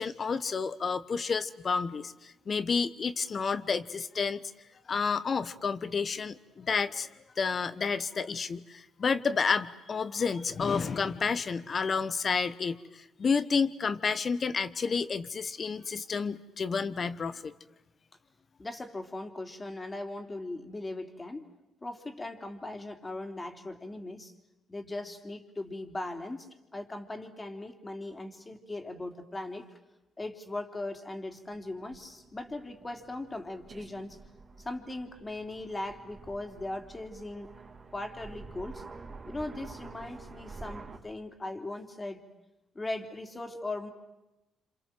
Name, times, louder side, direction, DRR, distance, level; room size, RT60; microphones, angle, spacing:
voice 1, 0.0-4.4 4.9-7.1 7.4-17.5, left 5 dB, 50° left, 13 dB, 1.2 m, -30 dB
voice 2, 18.6-21.5 21.8-24.3 24.7-29.6 30.2-34.2 34.6-37.6 37.9-38.8 39.2-42.2 42.7-43.9, left 2 dB, 25° left, 6 dB, 3.2 m, -39 dB
Aircraft, 31.4-41.0, right 3 dB, 45° right, 3.3 m, -49 dB
28.0 x 26.5 x 7.7 m, 0.97 s
supercardioid pair, 60°, 0 cm